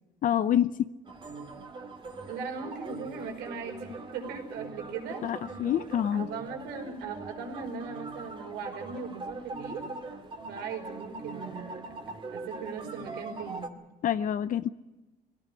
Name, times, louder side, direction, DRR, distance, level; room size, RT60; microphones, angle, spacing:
voice 1, 0.2-0.9 5.2-6.3 14.0-14.7, left 10 dB, 50° left, 13 dB, 0.7 m, -27 dB
sound 1, 1.0-13.7, right 3 dB, 30° right, 2.5 m, -42 dB
voice 2, 2.3-5.7 6.1-9.8 10.5-13.7, right 5 dB, 85° right, 4 dB, 5.2 m, -39 dB
20.0 x 17.5 x 9.9 m, 1.1 s
cardioid pair, 110°, 17 cm